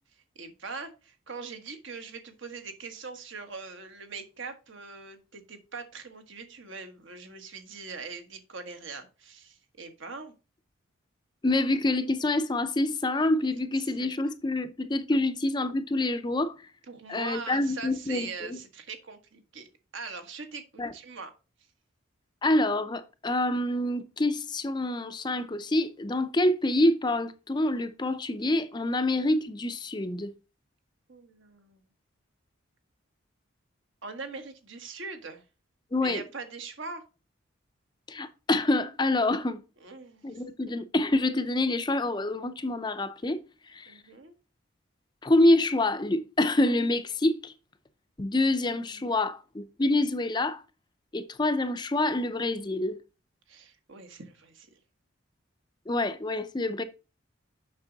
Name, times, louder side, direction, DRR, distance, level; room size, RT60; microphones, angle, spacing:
voice 1, 0.3-10.3 13.8-14.1 16.9-19.7 19.9-21.3 31.1-31.8 34.0-35.4 36.0-37.0 39.8-40.4 40.7-40.8 43.9-44.3 48.9-49.2 53.5-54.7, right 4 dB, 70° right, 1.4 m, -42 dB
voice 2, 11.4-16.5 17.1-18.6 20.8-20.9 22.4-30.3 35.9-36.2 38.1-39.6 40.2-43.4 43.7-43.9 45.2-47.5 48.2-50.6 51.1-53.0 55.9-56.8, left 2 dB, 20° left, 0.5 m, -26 dB
7.2 x 6.0 x 3.9 m
head